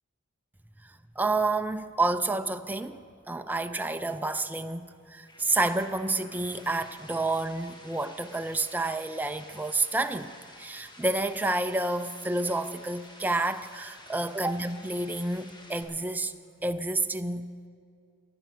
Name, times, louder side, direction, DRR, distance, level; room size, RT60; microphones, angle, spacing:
voice 1, 1.2-3.0 3.3-16.3 16.6-17.5, right 2 dB, 10° right, 9 dB, 0.4 m, -29 dB
sound 1, 4.8-15.8, left 1 dB, 20° left, 1.6 m, -51 dB
13.5 x 9.1 x 8.4 m, 2.3 s
head